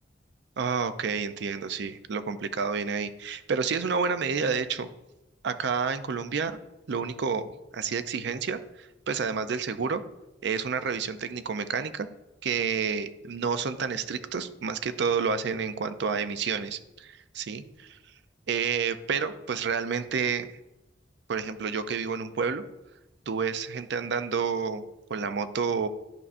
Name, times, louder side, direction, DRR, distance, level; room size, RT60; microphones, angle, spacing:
voice 1, 0.6-4.9 5.4-6.6 6.9-7.5 7.7-10.0 10.4-12.1 12.4-17.6 18.5-20.5 21.3-22.6 23.3-24.8 25.1-25.9, right 5 dB, 65° right, 11 dB, 0.5 m, -29 dB
11.0 x 5.4 x 2.5 m, 0.96 s
head